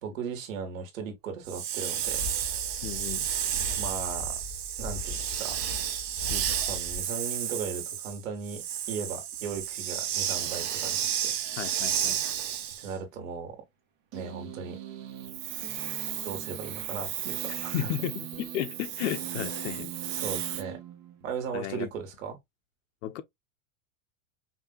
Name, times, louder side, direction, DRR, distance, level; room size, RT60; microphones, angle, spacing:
voice 1, 0.0-2.2 3.8-4.3 4.8-5.6 6.5-8.6 8.9-11.3 12.8-13.6 14.1-14.8 16.2-17.8 20.2-20.8 21.2-22.4, right 5 dB, 80° right, 2.0 m, -37 dB
Hiss, 1.4-12.9 15.2-20.6, right 10 dB, 25° right, 0.4 m, -32 dB
sound 1, 2.0-7.0, left 4 dB, 5° right, 1.4 m, -40 dB
voice 2, 2.8-3.3 6.3-6.5 11.6-12.2 17.7-19.9 20.2-20.3 21.5-21.9 23.0-23.2, left 12 dB, 70° left, 0.8 m, -34 dB
sound 2, 14.1-21.5, right 10 dB, 45° right, 1.2 m, -43 dB
5.4 x 2.7 x 2.3 m
supercardioid pair, 170°, 39 cm